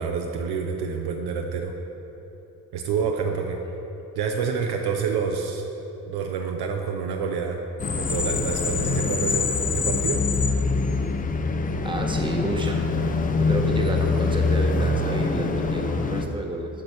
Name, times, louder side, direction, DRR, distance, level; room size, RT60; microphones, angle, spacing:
voice 1, 0.0-1.7 2.7-3.6 4.2-5.7 6.1-7.6 7.9-10.2, right 5 dB, 55° right, 3 dB, 0.7 m, -28 dB
sound 1, 7.8-16.3, left 4 dB, 20° left, 0.5 m, -24 dB
voice 2, 11.8-12.8 13.4-16.7, right 1 dB, 10° right, 2 dB, 1.0 m, -30 dB
8.7 x 5.3 x 4.5 m, 3.0 s
figure-of-eight pair, 40°, 47 cm